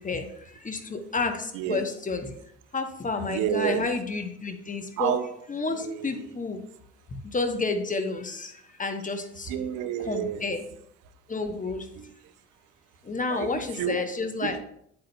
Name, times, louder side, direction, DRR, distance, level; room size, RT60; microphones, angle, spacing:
voice 1, 0.0-2.3 2.7-5.2 5.5-6.7 7.2-9.5 10.0-10.6 11.3-11.9 13.0-14.6, left 3 dB, 20° left, 7 dB, 1.0 m, -30 dB
voice 2, 3.2-3.8 5.0-5.3 5.7-6.2 9.5-10.5 12.0-12.1 13.3-14.0 14.4-14.6, right 10 dB, 60° right, 10 dB, 0.7 m, -30 dB
8.8 x 7.5 x 2.2 m, 0.72 s
figure-of-eight pair, 50°, 36 cm